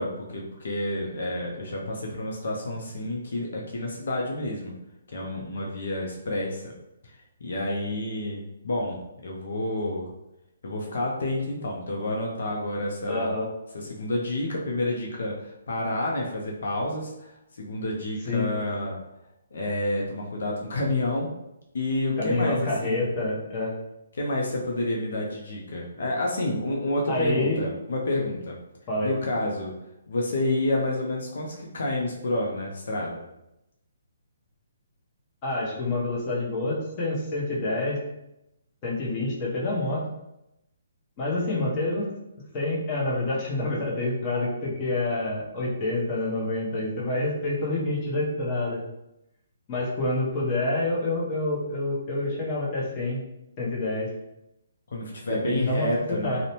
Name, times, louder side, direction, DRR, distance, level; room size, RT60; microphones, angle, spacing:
voice 1, 0.0-4.8 5.1-6.7 7.4-10.1 10.6-13.3 13.7-19.0 19.5-21.3 21.7-23.1 24.2-28.6 29.0-29.7 30.1-33.2 54.9-56.4, left 1 dB, 70° left, -1 dB, 0.5 m, -29 dB
voice 2, 13.1-13.5 18.3-18.5 22.2-23.7 27.1-27.6 28.9-29.1 35.4-38.0 38.8-40.1 41.2-42.1 42.5-48.8 49.7-53.2 53.6-54.1 55.3-55.9 56.2-56.4, left 2 dB, 25° left, -5 dB, 0.7 m, -27 dB
2.6 x 2.1 x 2.9 m, 0.87 s
hypercardioid pair, 155°, 0 cm